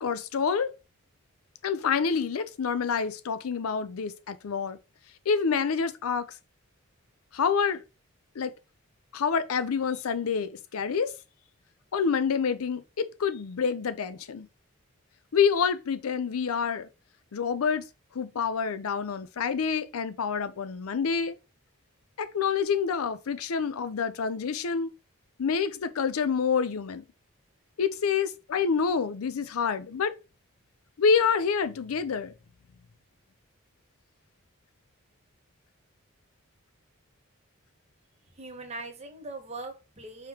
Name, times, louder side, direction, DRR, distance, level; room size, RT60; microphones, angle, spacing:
voice 1, 0.0-0.7 1.6-4.8 5.3-6.3 7.3-7.8 8.4-8.5 9.1-11.1 11.9-14.5 15.3-16.9 17.3-17.8 18.1-21.4 22.2-24.9 25.4-27.0 27.8-30.1 31.0-32.3, left 6 dB, 85° left, 0.5 m, -27 dB
voice 2, 38.4-40.3, right 2 dB, 30° right, 1.0 m, -40 dB
4.9 x 3.7 x 2.9 m
head